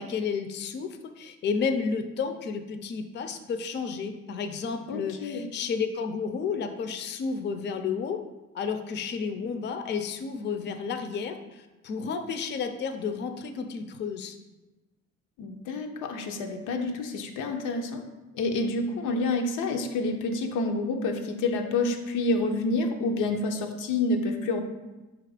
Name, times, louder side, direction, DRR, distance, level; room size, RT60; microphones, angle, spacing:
voice 1, 0.0-8.2 8.5-14.4, left 5 dB, 35° left, 8 dB, 0.4 m, -31 dB
voice 2, 4.9-5.4 15.4-18.0 18.3-24.6, left 2 dB, 90° left, 4 dB, 0.5 m, -28 dB
4.3 x 2.5 x 4.7 m, 1.1 s
cardioid pair, 90°, 30 cm